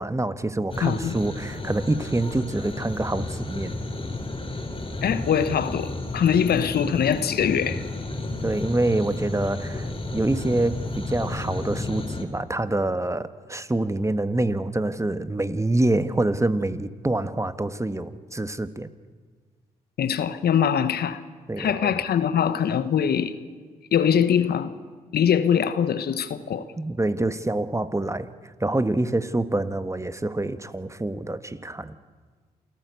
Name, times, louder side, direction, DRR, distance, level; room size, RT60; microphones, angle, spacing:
voice 1, 0.0-3.8 8.4-18.9 21.5-21.9 26.8-28.3 28.6-31.9, right 2 dB, 15° right, 1.3 m, -26 dB
sound 1, 0.7-12.2, left 2 dB, 30° left, 3.9 m, -32 dB
voice 2, 0.8-1.2 5.0-7.8 20.0-21.2 21.6-23.3 23.9-24.7 25.1-26.7, left 8 dB, 70° left, 1.1 m, -22 dB
27.5 x 13.0 x 8.2 m
hypercardioid pair, 45°, 17 cm